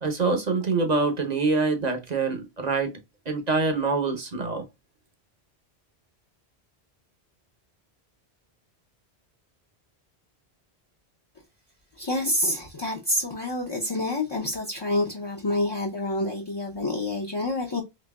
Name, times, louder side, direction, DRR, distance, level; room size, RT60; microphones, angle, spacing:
voice 1, 0.0-2.9 3.3-4.6, right 4 dB, 40° right, 0.9 m, -25 dB
voice 2, 12.0-17.8, left 1 dB, 30° left, 0.6 m, -27 dB
4.0 x 3.0 x 2.2 m
omnidirectional pair, 1.1 m